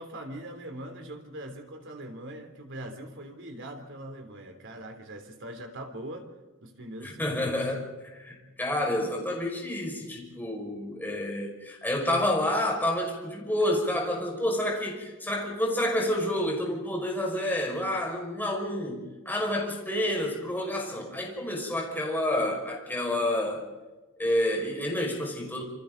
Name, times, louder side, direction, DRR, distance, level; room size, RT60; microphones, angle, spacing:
voice 1, 0.0-6.3 6.6-7.6, right 1 dB, 60° right, 5 dB, 3.3 m, -41 dB
voice 2, 7.0-23.6 24.2-25.6, left 1 dB, 10° left, -1 dB, 5.5 m, -29 dB
28.0 x 27.5 x 4.0 m, 1.2 s
head